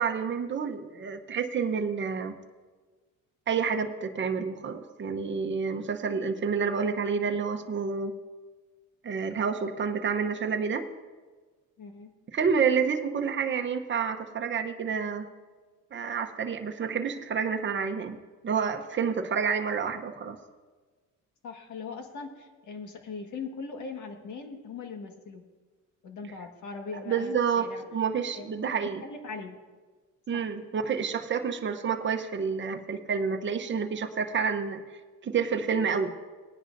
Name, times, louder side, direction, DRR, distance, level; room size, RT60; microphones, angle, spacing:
voice 1, 0.0-2.3 3.5-8.1 9.0-10.8 12.3-15.3 15.9-18.2 18.4-20.4 27.1-29.0 30.3-34.8 35.2-36.1, right 6 dB, 35° right, 5 dB, 1.0 m, -29 dB
voice 2, 11.8-12.1 21.4-25.4 26.0-27.8 28.3-28.7 29.0-29.6 30.3-30.5, left 4 dB, 55° left, 4 dB, 1.8 m, -40 dB
18.5 x 10.0 x 2.7 m, 1.4 s
cardioid pair, 100°, 35 cm